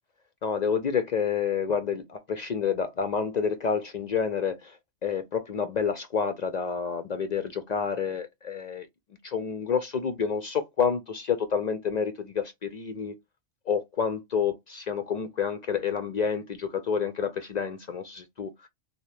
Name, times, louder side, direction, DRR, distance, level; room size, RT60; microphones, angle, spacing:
voice 1, 0.4-4.8 5.0-8.9 9.2-13.2 13.7-18.7, left 6 dB, 70° left, 0.4 m, -29 dB
3.7 x 2.8 x 3.2 m
omnidirectional pair, 1.3 m